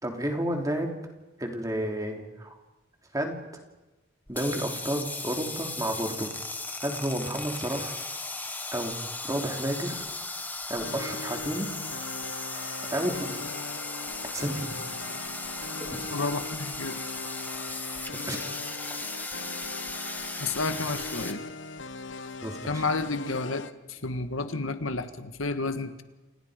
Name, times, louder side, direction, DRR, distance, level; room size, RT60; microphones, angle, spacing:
voice 1, 0.0-0.9 1.4-2.5 3.1-3.4 4.3-6.3 6.8-7.9 8.7-9.0 9.2-10.0 10.7-11.7 12.9-13.3 14.3-14.7 15.1-15.2 15.9-16.1 18.3-18.4 22.4-22.8, right 1 dB, 15° right, 2 dB, 3.3 m, -31 dB
sound 1, 4.3-21.3, left 3 dB, 10° left, 1.4 m, -37 dB
sound 2, 10.8-23.7, left 3 dB, 65° left, 1.1 m, -40 dB
voice 2, 16.1-17.1 20.4-21.4 22.7-26.0, left 3 dB, 85° left, 9 dB, 1.7 m, -31 dB
29.5 x 28.0 x 5.2 m, 1.1 s
head